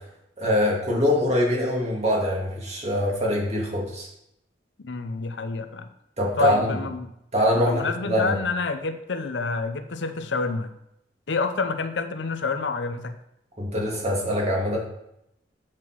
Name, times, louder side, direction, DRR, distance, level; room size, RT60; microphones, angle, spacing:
voice 1, 0.4-4.1 6.2-6.8 7.3-8.4 13.6-14.8, equal, 40° right, -2 dB, 2.2 m, -23 dB
voice 2, 4.8-5.9 6.4-7.1 7.5-10.7 11.3-13.1, left 4 dB, 85° left, 9 dB, 0.7 m, -28 dB
7.7 x 5.9 x 4.6 m, 0.81 s
head